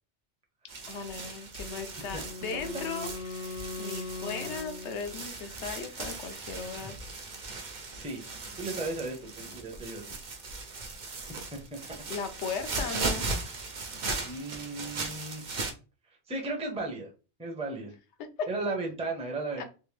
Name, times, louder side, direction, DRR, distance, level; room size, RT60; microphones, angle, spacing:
sound 1, 0.7-15.7, right 3 dB, 50° right, 0.7 m, -38 dB
voice 1, 0.9-7.0 12.1-13.3 18.4-18.5 19.6-19.7, left 5 dB, 80° left, 7 dB, 1.0 m, -37 dB
Wind instrument woodwind instrument, 1.6-5.5, left 3 dB, 60° left, 0.7 m, -41 dB
voice 2, 7.9-8.3 8.6-10.0 11.5-11.8 14.2-15.4 16.3-17.1 17.4-17.9 18.5-19.6, right 2 dB, 5° right, 1 dB, 0.7 m, -35 dB
3.4 x 2.9 x 3.2 m, 0.33 s
omnidirectional pair, 1.2 m